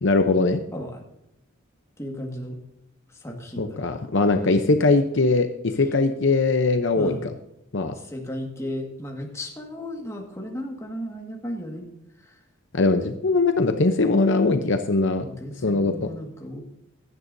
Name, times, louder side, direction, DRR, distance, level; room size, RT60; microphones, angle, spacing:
voice 1, 0.0-0.6 3.6-5.5 5.8-7.1 7.7-7.9 12.7-15.3 15.6-16.1, left 3 dB, 60° left, 7 dB, 0.7 m, -21 dB
voice 2, 0.7-1.0 2.0-2.6 3.2-3.8 6.9-7.2 8.0-11.8 15.2-16.6, left 1 dB, 15° left, 1 dB, 1.7 m, -34 dB
16.0 x 11.0 x 2.7 m, 0.83 s
head